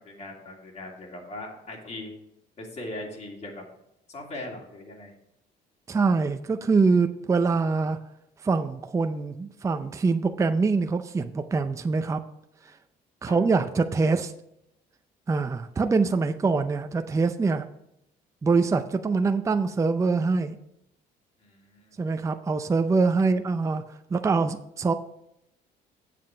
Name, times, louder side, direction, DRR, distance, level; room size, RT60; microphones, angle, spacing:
voice 1, 0.0-2.1 2.6-3.6 4.1-5.1 13.2-13.4 21.4-22.0 23.2-23.3, left 1 dB, 40° left, 0 dB, 2.7 m, -40 dB
voice 2, 5.9-8.0 8.4-12.2 12.6-12.7 13.2-14.3 15.3-17.7 18.4-20.6 22.0-23.8 24.1-24.9, right 4 dB, 20° right, 8 dB, 0.5 m, -24 dB
7.6 x 7.6 x 5.0 m, 0.80 s
cardioid pair, 110°, 17 cm